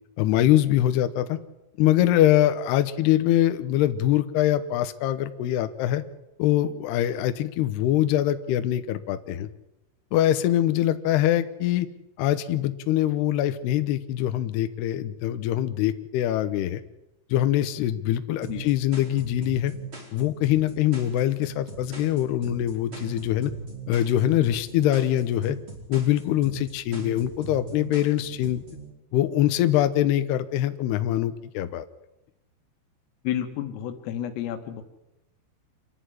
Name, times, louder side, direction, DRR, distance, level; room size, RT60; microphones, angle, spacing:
voice 1, 0.2-1.4 1.8-6.0 6.4-9.5 10.1-11.9 12.2-16.8 17.3-19.7 20.1-23.5 23.9-25.6 25.9-28.6 29.1-31.8, left 12 dB, 75° left, 10 dB, 2.6 m, -23 dB
sound 1, 18.4-28.9, right 5 dB, 25° right, 5.4 m, -40 dB
voice 2, 33.3-34.8, left 11 dB, 90° left, 6 dB, 4.1 m, -31 dB
27.0 x 11.5 x 9.9 m, 0.91 s
omnidirectional pair, 5.7 m